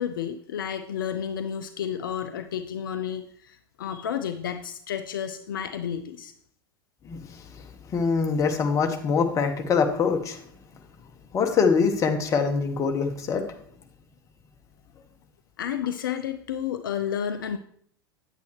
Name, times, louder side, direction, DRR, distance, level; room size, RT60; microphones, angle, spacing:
voice 1, 0.0-6.3 15.6-17.6, left 9 dB, 65° left, 9 dB, 0.5 m, -31 dB
voice 2, 7.0-10.4 11.3-13.4, left 5 dB, 25° left, 5 dB, 1.0 m, -24 dB
8.8 x 8.2 x 3.1 m, 0.63 s
figure-of-eight pair, 85°, 12 cm